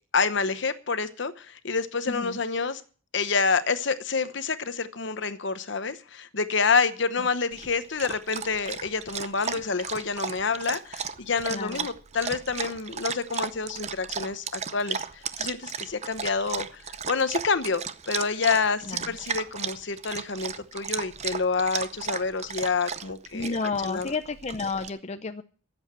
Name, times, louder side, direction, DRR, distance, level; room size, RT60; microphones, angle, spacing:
voice 1, 0.1-2.8 3.1-16.8 17.1-23.6 23.8-24.1, left 4 dB, 60° left, 12 dB, 1.0 m, -28 dB
voice 2, 2.1-2.4 9.5-9.6 11.5-11.9 18.9-19.2 23.3-25.4, left 4 dB, 35° left, 8 dB, 0.6 m, -32 dB
Dog, 7.5-24.9, right 6 dB, 35° right, 0.6 m, -35 dB
13.5 x 8.0 x 7.4 m, 0.41 s
head